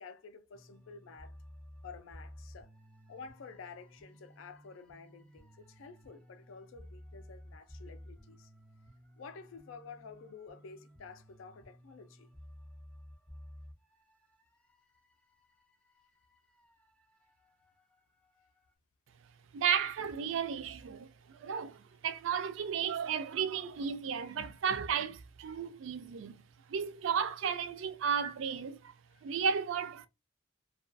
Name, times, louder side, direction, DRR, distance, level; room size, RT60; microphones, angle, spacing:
voice 1, 0.0-1.4 1.8-2.7 3.1-8.5 9.2-12.3 29.1-29.2, left 5 dB, 85° left, 0.4 m, -51 dB
sound 1, 0.5-18.7, equal, 5° left, 0.4 m, -55 dB
voice 2, 19.5-26.4 26.7-28.9 29.2-30.1, right 7 dB, 70° right, 0.4 m, -34 dB
2.3 x 2.2 x 2.4 m
head